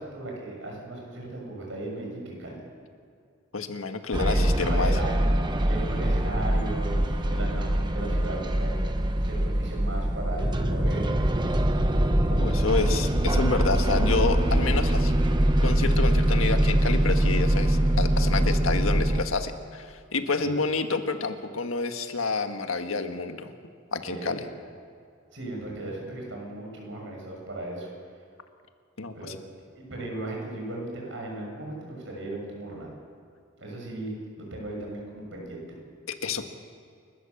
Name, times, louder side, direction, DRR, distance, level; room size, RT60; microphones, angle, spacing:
voice 1, 0.0-2.6 4.2-5.2 5.7-8.7 9.2-11.3 20.4-20.5 24.0-24.5 25.3-27.9 29.1-29.4 29.8-32.9 33.6-35.7, right 2 dB, 70° right, -1 dB, 7.0 m, -36 dB
voice 2, 3.5-4.9 12.3-15.1 15.6-23.5 23.9-24.4 29.0-29.4 36.1-36.4, left 4 dB, 90° left, 6 dB, 1.6 m, -29 dB
sound 1, 4.1-19.2, right 1 dB, 20° right, 1.0 m, -23 dB
29.5 x 13.5 x 7.2 m, 2.4 s
head